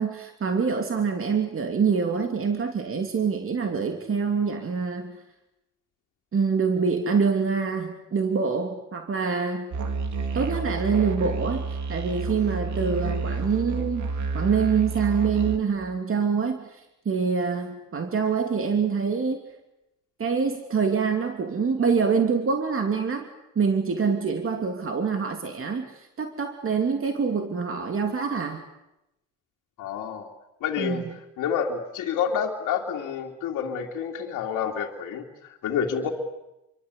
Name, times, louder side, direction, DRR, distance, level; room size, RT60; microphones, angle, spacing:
voice 1, 0.0-5.2 6.3-9.7 10.3-11.6 11.9-19.4 20.2-23.3 23.5-28.6 30.8-31.1, right 5 dB, 45° right, 5 dB, 2.8 m, -25 dB
Musical instrument, 9.7-15.6, right 4 dB, 70° right, 3.4 m, -29 dB
voice 2, 29.8-30.3 30.6-31.0 31.4-36.1, left 7 dB, 90° left, -1 dB, 2.7 m, -28 dB
28.0 x 24.0 x 8.3 m, 0.90 s
cardioid pair, 90°, 30 cm